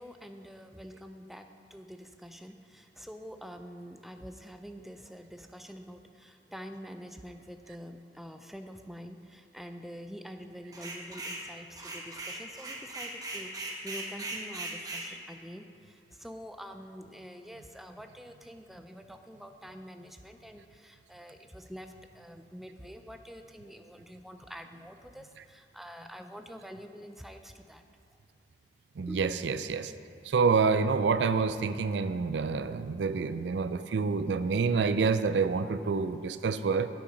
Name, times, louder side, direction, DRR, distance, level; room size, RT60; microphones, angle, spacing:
voice 1, 0.0-27.8 29.1-29.5, equal, ahead, 6 dB, 0.4 m, -46 dB
sound 1, 10.7-11.5 11.8-15.1, right 2 dB, 20° right, 1.1 m, -39 dB
voice 2, 29.0-29.9 30.3-36.9, right 5 dB, 75° right, 12 dB, 0.4 m, -27 dB
8.5 x 8.3 x 5.2 m, 2.6 s
head